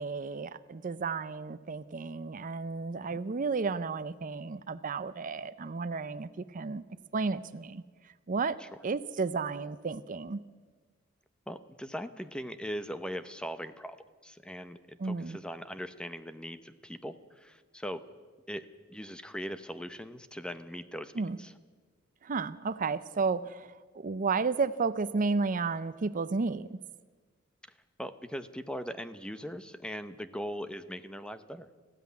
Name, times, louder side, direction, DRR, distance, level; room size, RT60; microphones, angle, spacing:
voice 1, 0.0-6.8 7.1-7.8 8.3-8.6 8.8-10.4 15.0-15.4 21.2-21.4 22.2-23.7 23.9-26.8, right 4 dB, 40° right, 14 dB, 0.5 m, -32 dB
voice 2, 11.5-14.0 14.2-18.0 18.5-21.5 28.0-31.7, equal, 5° left, 11 dB, 0.8 m, -40 dB
19.0 x 15.0 x 9.4 m, 1.4 s
head